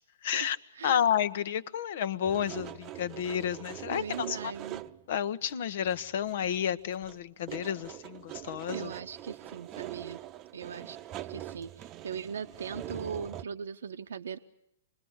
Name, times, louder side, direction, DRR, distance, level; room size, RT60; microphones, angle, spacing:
voice 1, 0.2-0.6 0.8-4.5 5.1-8.9, left 9 dB, 60° left, 1.2 m, -31 dB
sound 1, 2.2-5.1 5.4-5.5 5.8-6.7 6.9-13.4, right 13 dB, 30° right, 0.9 m, -43 dB
voice 2, 3.9-4.9 8.7-10.2 10.5-11.0 11.2-14.4, right 6 dB, 75° right, 0.9 m, -39 dB
27.0 x 20.5 x 8.1 m
hypercardioid pair, 120°, 0 cm